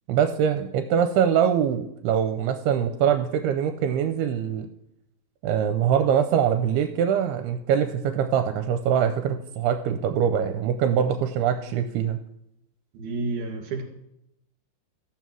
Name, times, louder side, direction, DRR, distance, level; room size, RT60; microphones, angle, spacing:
voice 1, 0.1-4.7 5.4-12.2, right 8 dB, 85° right, 7 dB, 2.6 m, -23 dB
voice 2, 12.9-13.8, right 3 dB, 50° right, 1 dB, 3.6 m, -30 dB
14.0 x 7.4 x 6.2 m, 0.81 s
omnidirectional pair, 4.7 m